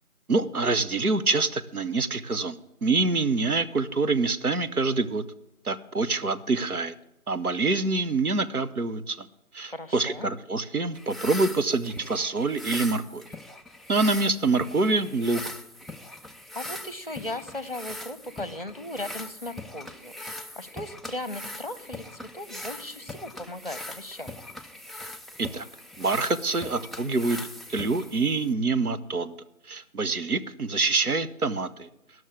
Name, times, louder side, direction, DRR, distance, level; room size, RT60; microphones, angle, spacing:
voice 1, 0.3-5.2 5.6-6.9 7.3-9.3 9.5-13.2 13.9-15.4 25.4-25.6 26.0-27.4 27.7-29.4 29.7-31.9, right 3 dB, 80° right, 11 dB, 1.0 m, -26 dB
voice 2, 9.7-10.3 16.5-24.4, left 1 dB, 40° left, 14 dB, 0.7 m, -37 dB
sound 1, 10.9-28.5, left 1 dB, ahead, 0.4 m, -41 dB
11.5 x 6.3 x 8.8 m, 0.87 s
figure-of-eight pair, 170°, 44 cm